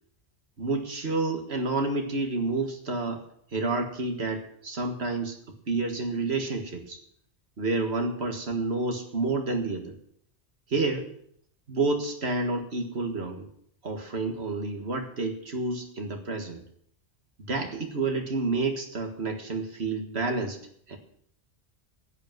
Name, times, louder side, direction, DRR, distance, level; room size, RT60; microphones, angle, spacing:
voice 1, 0.6-3.2 3.5-7.0 7.6-10.0 10.7-11.1 11.7-13.5 13.8-16.6 17.5-20.6 20.9-21.0, right 3 dB, 70° right, 4 dB, 2.0 m, -29 dB
11.0 x 8.6 x 7.5 m, 0.69 s
omnidirectional pair, 1.1 m